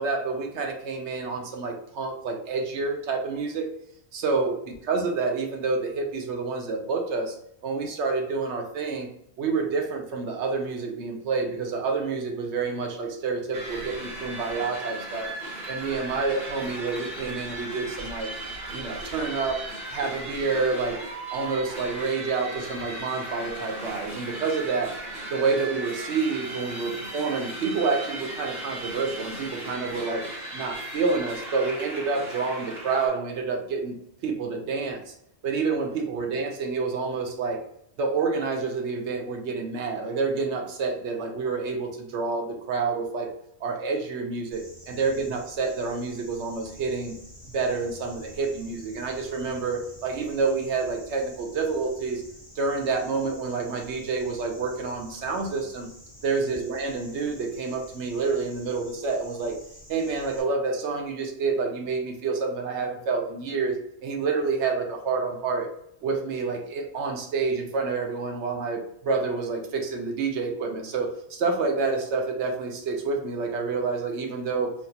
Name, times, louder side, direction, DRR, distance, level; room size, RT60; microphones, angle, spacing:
voice 1, 0.0-3.7 4.1-7.4 7.6-9.1 9.4-15.3 15.7-18.3 18.7-19.6 19.9-21.0 21.3-24.9 25.3-30.2 30.5-34.0 34.2-35.1 35.4-37.6 38.0-43.3 43.6-47.2 47.5-52.2 52.6-55.9 56.2-59.6 59.9-65.7 66.0-74.7, right 4 dB, 85° right, 2 dB, 1.0 m, -28 dB
sound 1, 13.5-33.1, right 1 dB, 50° right, 1.4 m, -37 dB
sound 2, 44.5-60.4, left 1 dB, 10° right, 1.3 m, -49 dB
3.6 x 2.4 x 2.7 m, 0.72 s
omnidirectional pair, 1.1 m